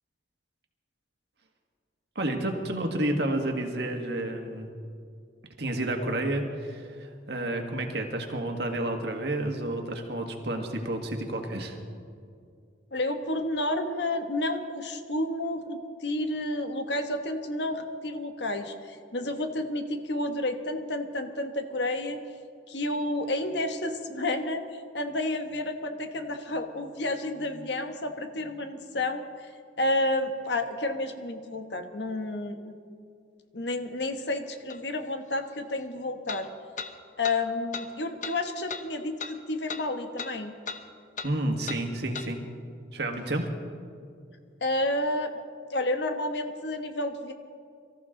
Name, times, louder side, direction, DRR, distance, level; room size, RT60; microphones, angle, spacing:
voice 1, 2.2-4.7 5.6-11.8 41.2-42.4 42.9-43.5, right 1 dB, 60° right, 3 dB, 1.8 m, -30 dB
voice 2, 12.9-22.2 22.7-29.5 29.8-32.7 33.5-36.5 37.2-40.5 44.6-45.3 45.7-47.3, left 1 dB, 65° left, 7 dB, 1.2 m, -30 dB
sound 1, 34.7-34.8 36.3-36.4 36.8-36.9 37.2-37.4 37.7-37.9 38.2-38.4 38.7-38.8 39.2-39.3 39.7-39.8 40.2-40.3 40.7-40.8 41.2-41.3 41.7-41.8 42.1-42.3, left 5 dB, 40° left, 0.8 m, -36 dB
24.0 x 14.0 x 3.9 m, 2.3 s
head